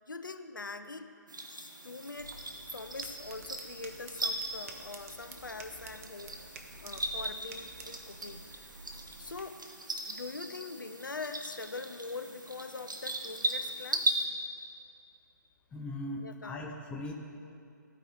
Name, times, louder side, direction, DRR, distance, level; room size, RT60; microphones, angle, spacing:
voice 1, 0.1-1.1 1.5-2.4 2.7-6.4 6.8-8.7 9.2-9.6 10.0-14.1 16.2-16.6, left 4 dB, 85° left, 9 dB, 0.5 m, -43 dB
sound 1, 1.3-14.2, right 1 dB, 80° right, 0.9 m, -38 dB
sound 2, 2.2-9.4, right 3 dB, 45° right, 0.8 m, -51 dB
voice 2, 15.7-17.1, left 1 dB, 10° left, 1 dB, 0.6 m, -39 dB
14.0 x 4.7 x 3.9 m, 2.5 s
figure-of-eight pair, 135°, 10 cm